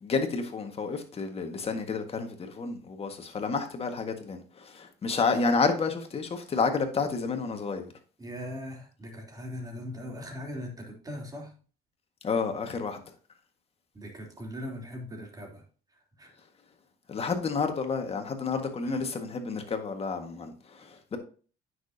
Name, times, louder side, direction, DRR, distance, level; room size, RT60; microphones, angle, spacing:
voice 1, 0.0-7.9 12.2-13.0 17.1-21.2, left 4 dB, 35° left, 1.7 m, -30 dB
voice 2, 8.2-11.5 13.9-15.6 16.2-16.3 18.8-19.0, left 1 dB, 20° right, 3.1 m, -40 dB
9.3 x 6.3 x 2.8 m
cardioid pair, 110°, 17 cm